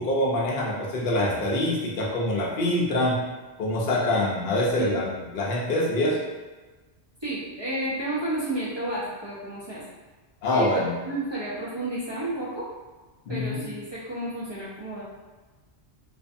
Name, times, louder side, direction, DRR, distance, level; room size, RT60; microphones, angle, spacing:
voice 1, 0.0-3.2 3.6-6.2 10.4-10.9 13.3-13.7, left 1 dB, 60° left, -4 dB, 0.7 m, -25 dB
voice 2, 7.2-9.9 10.5-12.7 13.3-15.0, right 1 dB, 35° right, -10 dB, 0.5 m, -31 dB
2.5 x 2.5 x 2.4 m, 1.3 s
omnidirectional pair, 1.1 m